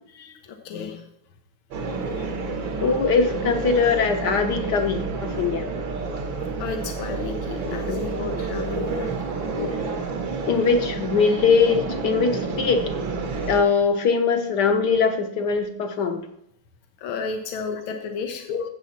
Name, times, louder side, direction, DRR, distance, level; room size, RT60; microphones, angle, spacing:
voice 1, 0.1-1.1 1.9-2.3 6.6-9.1 17.0-18.5, left 5 dB, 90° left, 5 dB, 1.8 m, -33 dB
sound 1, 1.7-13.6, right 4 dB, 70° right, 2.1 m, -29 dB
voice 2, 2.8-5.6 7.6-8.2 9.6-9.8 10.5-12.8 13.5-16.2 18.5-18.6, left 5 dB, 60° left, 6 dB, 1.4 m, -22 dB
13.5 x 8.0 x 4.3 m, 0.78 s
omnidirectional pair, 2.2 m